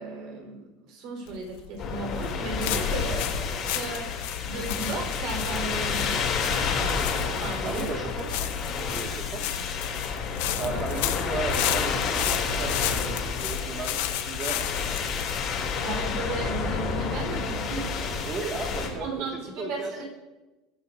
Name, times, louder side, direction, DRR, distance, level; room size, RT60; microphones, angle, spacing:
voice 1, 0.0-3.1 3.7-4.1 4.4-6.2 7.4-7.9 10.7-10.8 15.8-18.3 19.0-20.0, right 3 dB, 50° right, 2 dB, 4.8 m, -35 dB
sound 1, 1.3-16.8, left 11 dB, 70° left, 1.2 m, -34 dB
sound 2, 1.8-18.9, left 5 dB, 35° left, 3.3 m, -30 dB
voice 2, 3.0-3.7 7.6-8.5 8.8-9.7 10.6-14.7 18.2-20.0, right 3 dB, 25° right, 1 dB, 2.3 m, -36 dB
21.5 x 13.0 x 2.8 m, 1.1 s
cardioid pair, 170°, 0 cm